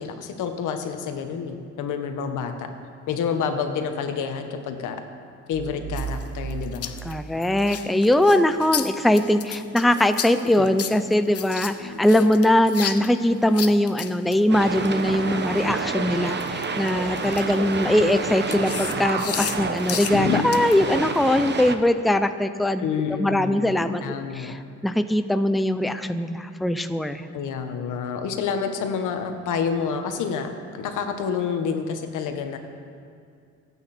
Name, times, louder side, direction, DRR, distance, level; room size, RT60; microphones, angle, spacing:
voice 1, 0.0-2.7 3.1-5.0 5.5-6.9 10.6-10.7 22.8-24.5 27.3-32.6, left 6 dB, 85° left, 6 dB, 1.5 m, -28 dB
sound 1, 5.5-8.2, right 6 dB, 65° right, 0.8 m, -35 dB
sound 2, 6.0-15.8 16.3-21.3, left 8 dB, 50° left, 0.9 m, -33 dB
voice 2, 7.0-24.0 24.3-27.3, left 1 dB, ahead, 9 dB, 0.6 m, -21 dB
sound 3, 14.5-21.7, right 4 dB, 35° right, 1.1 m, -29 dB
25.0 x 9.1 x 4.4 m, 2.3 s
cardioid pair, 90°, 30 cm